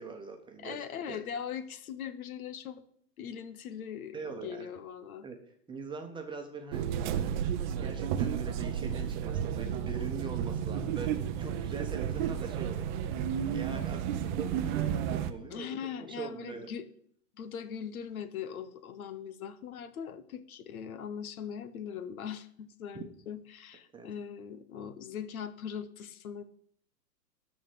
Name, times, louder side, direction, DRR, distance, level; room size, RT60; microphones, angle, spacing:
voice 1, 0.0-1.2 4.1-4.7 5.2-5.4 5.7-7.4 7.8-11.1 11.4-12.9 13.5-15.7 16.2-16.7 22.9-23.1 23.9-24.1, right 5 dB, 10° right, 3 dB, 1.3 m, -42 dB
voice 2, 0.6-2.9 3.2-5.3 15.5-16.9 17.4-26.4, left 8 dB, 60° left, 12 dB, 1.2 m, -40 dB
sound 1, 6.7-15.3, right 9 dB, 30° right, 0.8 m, -32 dB
12.5 x 4.2 x 7.7 m, 0.63 s
hypercardioid pair, 125°, 49 cm